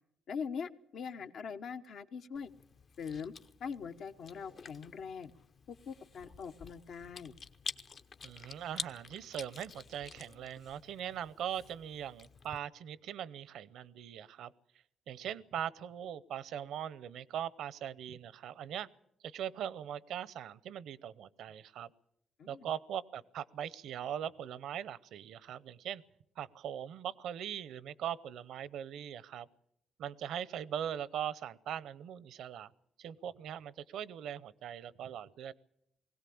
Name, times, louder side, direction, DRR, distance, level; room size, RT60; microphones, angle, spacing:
voice 1, 0.3-2.5 3.0-3.3 3.6-5.3 5.7-7.3 22.4-22.7, left 6 dB, 70° left, 8 dB, 1.1 m, -42 dB
Chewing mastication, 2.4-12.6, left 5 dB, 50° left, 0.8 m, -49 dB
voice 2, 8.2-14.5 15.1-18.9 19.2-21.9 22.5-26.0 26.4-29.5 30.0-32.7 33.0-35.5, right 9 dB, 80° right, 19 dB, 0.7 m, -41 dB
20.5 x 17.0 x 8.6 m, 0.77 s
cardioid pair, 90°, 0 cm